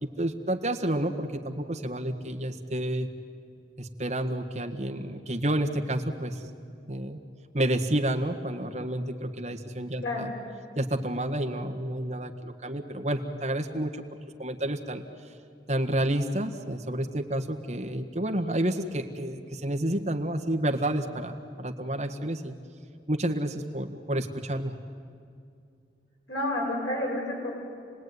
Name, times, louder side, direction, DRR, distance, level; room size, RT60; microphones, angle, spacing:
voice 1, 0.0-3.1 3.8-6.4 6.9-7.2 7.5-10.3 10.8-14.0 14.4-15.0 15.7-22.5 23.1-24.7, right 1 dB, 40° right, 3 dB, 1.6 m, -30 dB
voice 2, 26.3-27.5, left 1 dB, 90° left, -3 dB, 7.8 m, -30 dB
29.5 x 19.0 x 9.6 m, 2.4 s
head